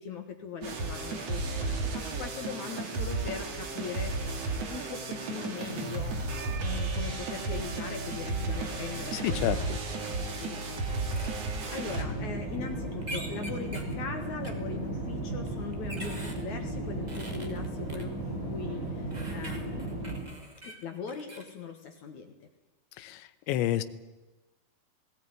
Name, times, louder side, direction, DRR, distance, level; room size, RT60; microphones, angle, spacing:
voice 1, 0.0-4.1 4.7-6.2 6.6-9.8 10.0-20.0 20.6-22.3, left 6 dB, 60° left, 5 dB, 2.1 m, -41 dB
sound 1, 0.6-12.0, right 3 dB, 40° right, 2.8 m, -33 dB
voice 2, 9.1-9.8 22.9-23.8, left 13 dB, 85° left, 11 dB, 3.2 m, -30 dB
sound 2, 10.2-10.6 11.1-11.3 13.0-13.9 14.4-14.5 15.5-16.4 17.1-18.0 19.1-21.5, right 1 dB, 85° right, 0.3 m, -43 dB
sound 3, 11.8-20.2, right 2 dB, 15° right, 7.8 m, -35 dB
19.0 x 17.0 x 9.6 m, 1.1 s
omnidirectional pair, 5.2 m